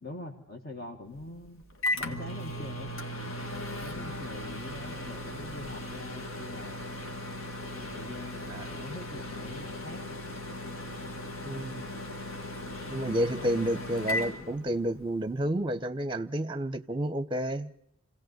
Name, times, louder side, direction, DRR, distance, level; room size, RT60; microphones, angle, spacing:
voice 1, 0.0-1.6 1.9-2.9 3.6-6.8 7.7-10.0 10.9-11.0, left 1 dB, 45° left, 1.5 m, -44 dB
Microwave oven, 1.2-15.2, left 1 dB, 75° left, 2.0 m, -37 dB
voice 2, 11.4-11.8 12.9-17.7, right 1 dB, 25° right, 0.8 m, -30 dB
26.5 x 17.5 x 7.9 m
head